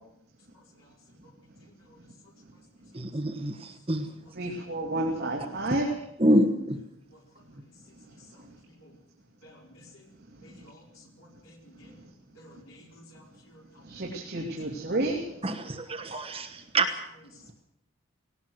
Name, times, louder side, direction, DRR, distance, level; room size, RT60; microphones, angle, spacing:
voice 1, 2.9-3.5 3.9-4.0 6.2-6.8 15.4-16.5 16.7-16.9, right 1 dB, 25° right, 6 dB, 1.2 m, -25 dB
voice 2, 4.3-5.9 13.9-15.2, right 1 dB, 45° right, -2 dB, 2.8 m, -30 dB
voice 3, 9.4-9.9 10.4-10.8 11.2-11.9 12.4-13.2 13.5-13.6, equal, 70° left, 0 dB, 4.5 m, -53 dB
18.5 x 18.0 x 7.9 m, 0.80 s
head